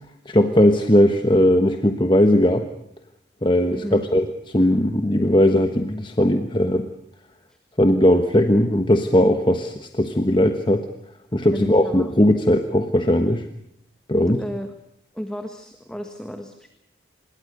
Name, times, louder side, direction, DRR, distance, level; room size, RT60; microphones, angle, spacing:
voice 1, 0.3-2.6 3.4-6.9 7.8-10.9 11.3-13.5 14.1-14.4, left 1 dB, 25° left, 7 dB, 1.2 m, -18 dB
voice 2, 3.7-4.0 11.5-12.1 14.2-14.7 15.1-16.7, equal, 5° left, 6 dB, 1.6 m, -33 dB
26.0 x 22.0 x 6.6 m, 0.75 s
head